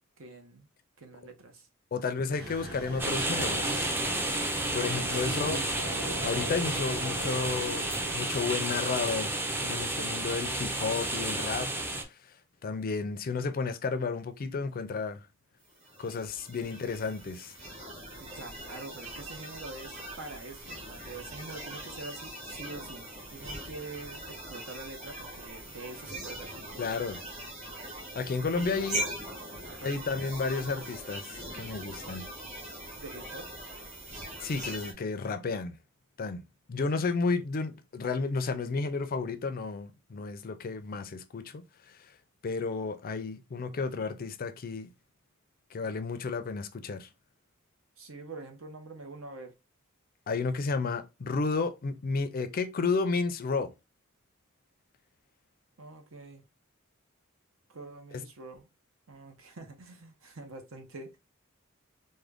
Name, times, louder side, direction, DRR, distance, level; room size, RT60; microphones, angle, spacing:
voice 1, 0.2-0.7 1.0-2.4 5.1-5.7 16.6-16.7 18.1-27.2 28.5-28.9 29.6-29.9 33.0-33.5 48.0-49.5 55.8-56.5 57.7-58.7 59.1-61.2, right 2 dB, 70° right, 0.8 m, -45 dB
voice 2, 1.9-3.9 4.7-5.6 6.2-11.7 12.6-15.2 16.0-17.5 26.8-27.2 28.1-29.0 29.8-32.3 34.4-35.7 36.2-36.4 36.7-41.6 42.4-44.9 45.7-47.1 50.3-53.7 58.1-58.2, left 4 dB, 45° left, 0.4 m, -32 dB
sound 1, 2.4-8.2, right 1 dB, 50° right, 1.3 m, -40 dB
sound 2, 3.0-12.0, right 1 dB, 10° right, 0.5 m, -31 dB
sound 3, 15.8-34.9, right 1 dB, 35° right, 1.1 m, -41 dB
3.6 x 2.1 x 3.4 m
head